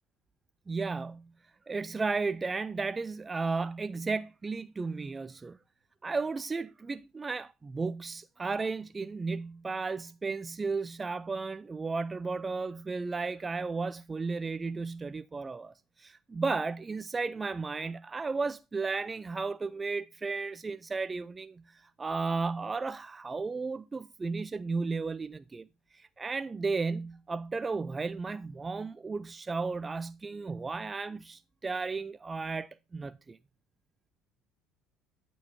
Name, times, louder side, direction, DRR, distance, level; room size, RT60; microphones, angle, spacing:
voice 1, 0.7-1.3 1.7-5.6 6.0-25.6 25.9-33.4, right 4 dB, 25° right, 0.4 m, -34 dB
12.0 x 4.6 x 4.2 m
figure-of-eight pair, 60°, 0 cm